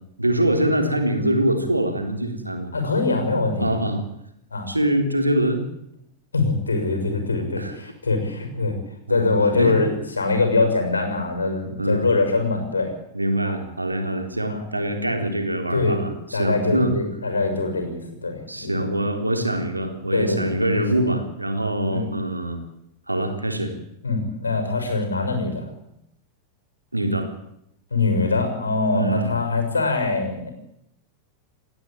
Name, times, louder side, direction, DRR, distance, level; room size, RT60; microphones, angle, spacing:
voice 1, 0.2-2.7 3.6-4.0 4.7-5.6 7.6-7.7 9.1-9.3 9.6-9.8 11.8-12.2 13.1-17.0 18.5-22.6 23.1-23.7 26.9-27.3 28.9-29.3, right 1 dB, 85° right, 4 dB, 3.8 m, -24 dB
voice 2, 2.7-3.7 4.5-4.7 6.3-8.7 9.1-12.9 13.4-13.5 14.5-14.6 15.7-16.1 16.3-18.7 20.1-20.8 21.9-22.1 24.0-25.7 27.9-30.5, left 3 dB, 75° left, 5 dB, 6.4 m, -23 dB
29.5 x 12.5 x 9.1 m, 0.80 s
figure-of-eight pair, 90°, 0 cm